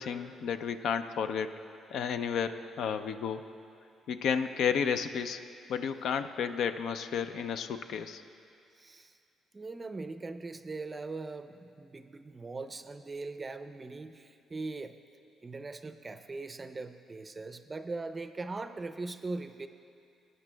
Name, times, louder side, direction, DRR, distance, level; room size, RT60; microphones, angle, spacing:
voice 1, 0.0-1.5 1.9-3.4 4.1-5.4 5.7-8.2, left 7 dB, 75° left, 9 dB, 0.4 m, -32 dB
voice 2, 8.8-9.2 9.5-15.0 15.4-19.7, right 3 dB, 25° right, 10 dB, 0.4 m, -40 dB
18.5 x 9.4 x 2.2 m, 2.5 s
cardioid pair, 90°, 0 cm